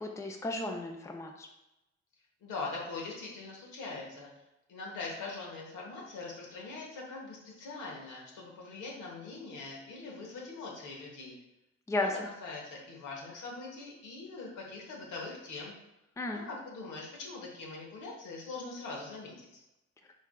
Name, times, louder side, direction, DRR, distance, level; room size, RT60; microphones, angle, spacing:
voice 1, 0.0-1.5 11.9-12.3 16.2-16.5, left 2 dB, 10° left, 3 dB, 0.4 m, -34 dB
voice 2, 2.4-4.3 4.7-11.3 12.2-15.7 16.3-19.6, left 3 dB, 85° left, -2 dB, 1.2 m, -42 dB
4.6 x 3.5 x 2.3 m, 0.91 s
cardioid pair, 90°, 30 cm